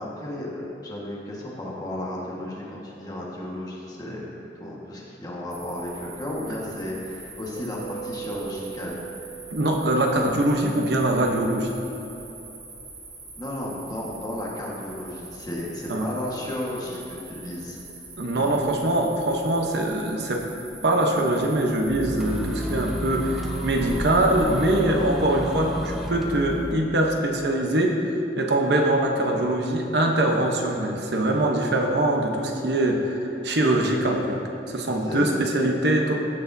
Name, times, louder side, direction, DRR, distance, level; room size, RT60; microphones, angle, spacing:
voice 1, 0.0-4.2 4.5-9.0 13.4-17.8 18.4-18.5 35.0-35.4, left 1 dB, 20° left, -4 dB, 1.4 m, -33 dB
sound 1, 5.5-24.8, right 3 dB, 40° right, 1.8 m, -44 dB
Mallet percussion, 7.5-11.3, right 10 dB, 80° left, 1.8 m, -41 dB
voice 2, 9.5-11.7 15.9-16.1 18.2-20.5 20.8-28.0 28.4-33.2 33.4-34.4 34.7-36.2, right 1 dB, 70° right, 2 dB, 0.9 m, -23 dB
sound 2, 21.9-26.7, equal, ahead, 0.7 m, -31 dB
16.0 x 6.7 x 2.7 m, 3.0 s
head